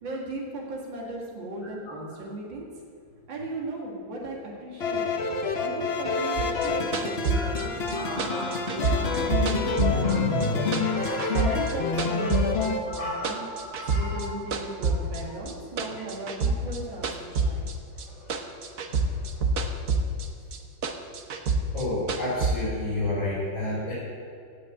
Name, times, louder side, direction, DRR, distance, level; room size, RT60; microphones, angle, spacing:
voice 1, 0.0-2.7 3.3-5.1 5.6-10.7 11.3-13.5 13.9-17.8, right 1 dB, 75° right, -3 dB, 2.8 m, -37 dB
sound 1, 4.8-12.8, left 4 dB, 45° left, 0.9 m, -27 dB
sound 2, 6.4-10.5 10.7-12.7 12.9-14.3 14.5-18.1 18.3-20.3 20.5-22.5, right 3 dB, 50° right, 1.2 m, -27 dB
voice 2, 7.3-9.7 10.4-10.5 10.8-11.6 12.2-14.3 15.0-15.1 17.9-19.5 21.7-23.9, left 1 dB, 80° left, -9 dB, 5.1 m, -34 dB
16.5 x 6.0 x 8.7 m, 2.4 s
omnidirectional pair, 2.1 m